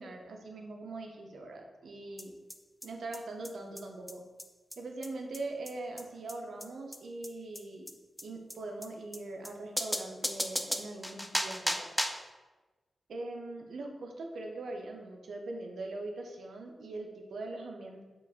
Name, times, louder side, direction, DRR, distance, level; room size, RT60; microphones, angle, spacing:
voice 1, 0.0-2.3 2.8-4.2 4.8-7.9 8.2-11.9 13.1-18.0, right 2 dB, 80° right, 3 dB, 0.6 m, -41 dB
sound 1, 2.2-2.3 2.5-2.6 2.8-2.9 3.1-3.2 3.4-3.5 3.8-3.9 4.1-4.2 4.4-4.5 4.7-4.8 5.0-5.1 5.3-5.4 5.7-5.8 6.0-6.1 6.3-6.4 6.6-6.7 6.9-7.0 7.2-7.3 7.5-7.6 7.9-8.0 8.2-8.3 8.5-8.6 8.8-8.9 9.1-9.2 9.4-9.5 9.8-12.3, equal, 5° left, 0.3 m, -34 dB
5.1 x 2.4 x 3.5 m, 1.2 s
cardioid pair, 70°, 0 cm